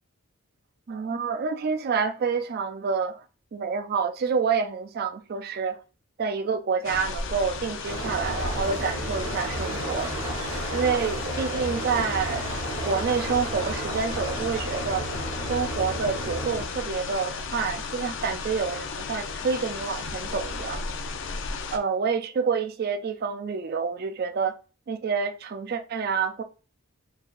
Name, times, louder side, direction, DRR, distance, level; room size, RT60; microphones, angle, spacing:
voice 1, 0.9-3.2 3.5-5.8 6.2-10.1 10.7-12.5 12.8-15.1 15.5-20.8 21.7-24.5 24.9-26.4, right 5 dB, 45° right, 0.3 m, -28 dB
sound 1, 6.8-21.8, left 4 dB, 60° left, 0.5 m, -34 dB
sound 2, 7.9-16.7, right 1 dB, 80° right, 1.3 m, -33 dB
4.4 x 3.3 x 2.4 m
head